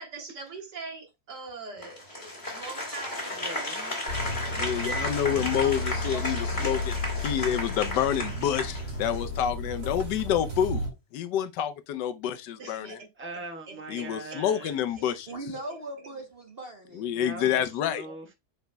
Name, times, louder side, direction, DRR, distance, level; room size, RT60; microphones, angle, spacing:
voice 1, 0.0-3.8 12.6-13.1 13.7-15.1 18.0-18.1, right 4 dB, 70° right, 2.4 m, -43 dB
Applause, 1.8-9.4, left 1 dB, 25° left, 2.3 m, -34 dB
voice 2, 3.3-4.0 4.5-5.1 13.2-15.1 17.1-18.3, right 2 dB, 10° right, 1.0 m, -42 dB
sound 1, 4.1-10.9, left 1 dB, 85° right, 2.7 m, -33 dB
voice 3, 4.5-7.0 7.2-13.0 13.9-15.3 17.0-18.1, left 10 dB, 75° left, 1.3 m, -28 dB
voice 4, 5.6-6.9 15.3-17.2, right 2 dB, 45° right, 0.9 m, -41 dB
8.0 x 5.2 x 2.2 m
omnidirectional pair, 1.9 m